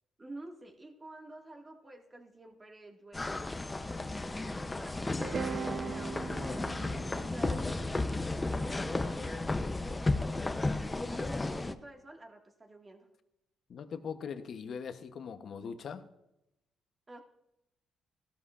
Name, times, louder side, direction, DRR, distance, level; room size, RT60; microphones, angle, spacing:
voice 1, 0.2-3.4 4.0-6.3 7.1-7.9 8.6-10.4 11.1-13.1 17.1-17.2, right 1 dB, 25° right, 2 dB, 1.9 m, -50 dB
sound 1, 3.1-11.7, left 2 dB, 20° left, 0.7 m, -34 dB
sound 2, 5.2-9.4, right 5 dB, 45° right, 0.6 m, -40 dB
voice 2, 8.7-9.1 13.7-16.1, left 6 dB, 60° left, 9 dB, 0.9 m, -41 dB
16.0 x 12.5 x 2.5 m, 0.89 s
cardioid pair, 90°, 0 cm